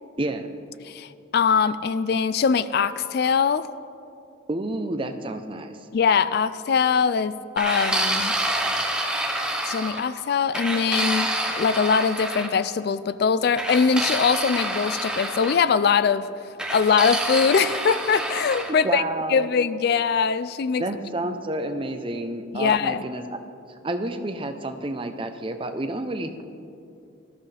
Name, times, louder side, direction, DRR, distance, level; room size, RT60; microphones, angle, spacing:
voice 1, 0.8-3.7 5.9-8.4 9.6-11.3 11.6-16.3 16.7-19.0 19.3-20.8 22.5-23.0, left 6 dB, 55° left, 15 dB, 0.3 m, -22 dB
voice 2, 4.5-5.8 18.8-19.5 20.8-23.2 23.8-26.4, right 2 dB, 25° right, 7 dB, 0.7 m, -29 dB
sound 1, 7.6-10.1 10.5-12.5 13.6-15.6 16.6-18.7, right 1 dB, 5° right, 1.0 m, -27 dB
18.5 x 13.0 x 3.4 m, 2.6 s
head